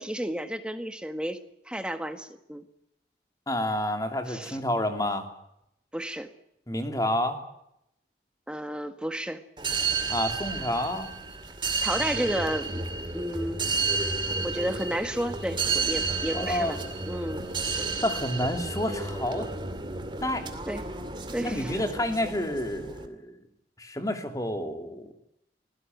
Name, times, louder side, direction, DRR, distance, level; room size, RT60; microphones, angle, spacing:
voice 1, 0.0-1.4 1.6-2.6 4.3-4.6 5.9-6.3 8.5-9.4 11.8-12.9 13.1-13.6 14.4-16.8 17.1-18.0 20.7-20.8 21.3-21.8, equal, 5° right, 8 dB, 1.6 m, -32 dB
voice 2, 3.5-5.2 6.7-7.4 10.1-11.1 16.3-16.7 18.0-19.5 20.2-20.5 21.4-23.4 23.8-25.1, left 1 dB, 20° left, 6 dB, 2.9 m, -29 dB
sound 1, 9.6-23.1, right 4 dB, 25° right, 2.5 m, -31 dB
25.5 x 17.0 x 9.3 m, 0.80 s
head